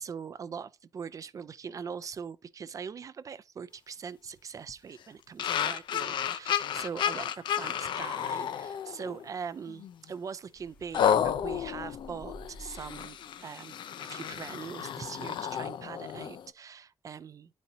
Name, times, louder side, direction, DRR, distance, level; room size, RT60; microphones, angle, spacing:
voice 1, 0.0-17.5, right 6 dB, 40° right, 0.4 m, -42 dB
sound 1, 5.4-9.2 9.7-9.9 10.9-16.5, left 9 dB, 70° left, 0.4 m, -32 dB
sound 2, 10.6-13.3, equal, 25° left, 0.6 m, -50 dB
10.5 x 4.2 x 2.6 m
cardioid pair, 115°, 8 cm